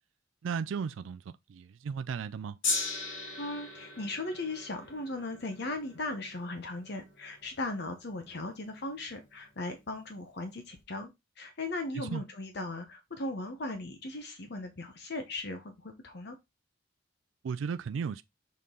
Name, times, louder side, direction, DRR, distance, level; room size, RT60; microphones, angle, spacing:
voice 1, 0.4-2.6 12.0-12.2 17.4-18.2, right 6 dB, 85° right, 0.4 m, -35 dB
Gong, 2.6-9.0 9.8-9.9, left 3 dB, 75° left, 2.8 m, -39 dB
voice 2, 3.4-11.1 11.4-16.4, left 2 dB, 60° left, 1.0 m, -38 dB
6.6 x 5.3 x 3.8 m
head